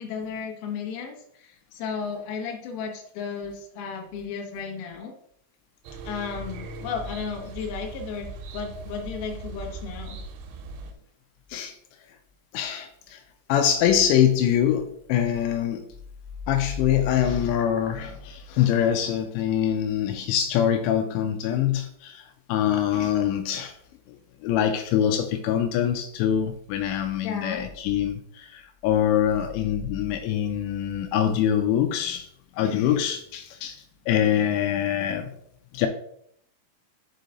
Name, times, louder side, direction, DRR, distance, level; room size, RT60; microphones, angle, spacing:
voice 1, 0.0-5.1 6.0-10.2 27.2-27.7, left 6 dB, 70° left, 2.7 m, -34 dB
sound 1, 5.9-10.9, right 2 dB, 90° right, 3.1 m, -39 dB
voice 2, 12.5-13.2 13.5-15.9 16.5-23.7 24.1-24.2 24.4-32.3 32.5-35.3 35.7-35.9, left 10 dB, 85° left, 2.8 m, -24 dB
6.5 x 4.6 x 3.9 m
omnidirectional pair, 5.1 m